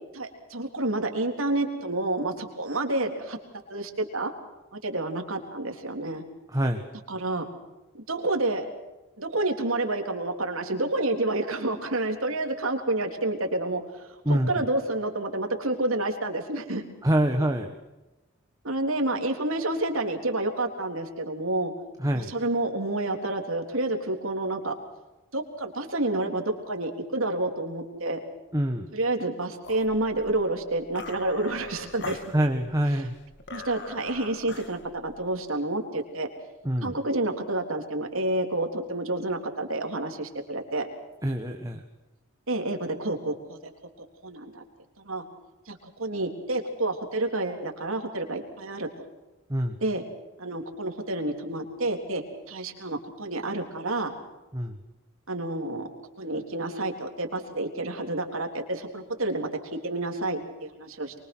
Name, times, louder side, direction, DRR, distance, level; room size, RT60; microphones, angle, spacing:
voice 1, 0.1-3.4 3.7-4.3 4.7-6.2 7.1-7.5 7.9-8.7 9.2-16.8 18.6-21.7 22.1-24.7 25.3-28.2 28.9-32.2 33.0-33.1 33.5-36.3 36.8-40.9 42.5-43.7 44.2-44.6 45.0-45.2 45.7-48.9 49.8-50.0 50.4-54.1 55.3-55.9 56.2-59.5 59.8-61.1, right 2 dB, 70° right, 3 dB, 3.6 m, -29 dB
voice 2, 6.5-6.9 14.2-14.6 17.0-17.7 22.0-22.3 28.5-28.9 32.3-33.1 36.6-36.9 41.2-41.8 49.5-49.8 54.5-54.8, right 1 dB, 15° right, 4 dB, 1.6 m, -25 dB
sound 1, 29.6-35.4, left 3 dB, 55° left, 2.0 m, -43 dB
24.5 x 24.0 x 6.3 m, 1.1 s
head